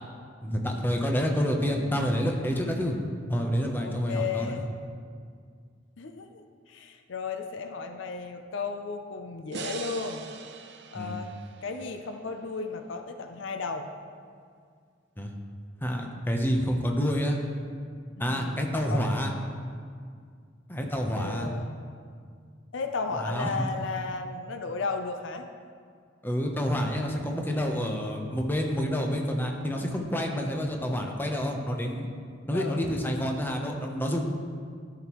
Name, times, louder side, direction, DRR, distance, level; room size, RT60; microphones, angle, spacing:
voice 1, 0.4-3.0 3.3-4.6 10.9-11.2 15.2-15.3 15.8-17.4 18.2-19.3 20.7-21.5 23.2-23.7 26.2-32.1 32.5-34.2, equal, 10° left, 2 dB, 0.8 m, -28 dB
voice 2, 3.8-4.7 6.0-10.3 10.9-11.3 11.6-13.9 18.2-19.0 21.1-21.8 22.7-25.5 32.5-32.9, left 4 dB, 70° left, 6 dB, 0.5 m, -34 dB
sound 1, 9.5-12.7, right 5 dB, 65° right, 0.6 m, -42 dB
13.0 x 6.0 x 3.1 m, 2.1 s
head